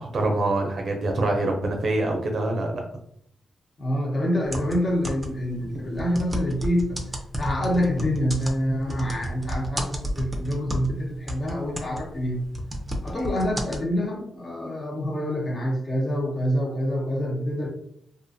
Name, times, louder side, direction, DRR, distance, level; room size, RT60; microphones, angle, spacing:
voice 1, 0.0-2.8, right 2 dB, 65° right, 2 dB, 0.5 m, -25 dB
voice 2, 3.8-7.0 7.4-12.5 13.0-17.7, equal, 40° left, -2 dB, 1.0 m, -26 dB
sound 1, 4.4-5.5 5.9-11.0 11.3-13.8, equal, 15° right, 0.6 m, -31 dB
2.5 x 2.2 x 2.7 m, 0.67 s
cardioid pair, 65°, 0 cm